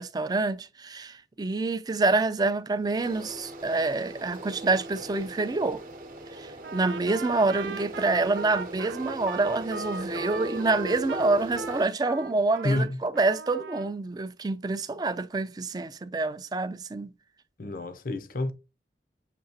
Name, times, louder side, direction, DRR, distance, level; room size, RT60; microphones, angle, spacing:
voice 1, 0.0-5.8 6.3-17.1, right 3 dB, 20° right, 0.4 m, -27 dB
sound 1, 3.0-11.8, right 1 dB, 50° right, 0.8 m, -39 dB
Trumpet, 6.6-12.8 13.1-13.9, right 5 dB, 85° right, 0.5 m, -39 dB
voice 2, 12.6-13.0 17.6-18.5, left 2 dB, 50° left, 0.6 m, -28 dB
6.8 x 2.8 x 2.7 m
head